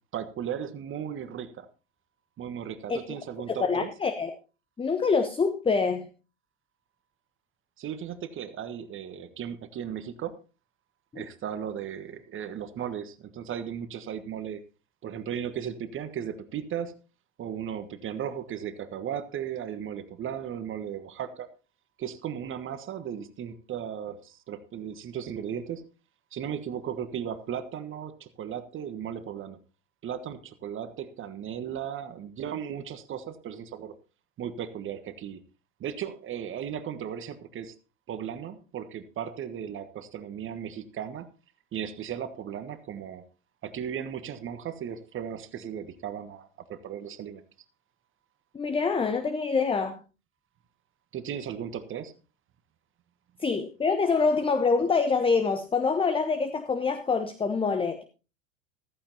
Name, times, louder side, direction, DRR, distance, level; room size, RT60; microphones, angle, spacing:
voice 1, 0.1-1.7 2.4-3.9 7.8-10.4 11.1-14.6 15.0-17.0 17.4-21.5 22.0-25.8 26.3-29.6 30.0-33.9 34.4-35.4 35.8-37.8 38.1-41.3 41.7-43.2 43.6-47.5 51.1-52.1, right 9 dB, 30° right, 12 dB, 1.3 m, -36 dB
voice 2, 3.5-4.3 4.8-6.1 11.1-11.3 48.5-50.0 53.4-58.0, left 4 dB, 15° left, 10 dB, 1.0 m, -25 dB
14.5 x 14.5 x 2.8 m, 0.32 s
figure-of-eight pair, 85°, 39 cm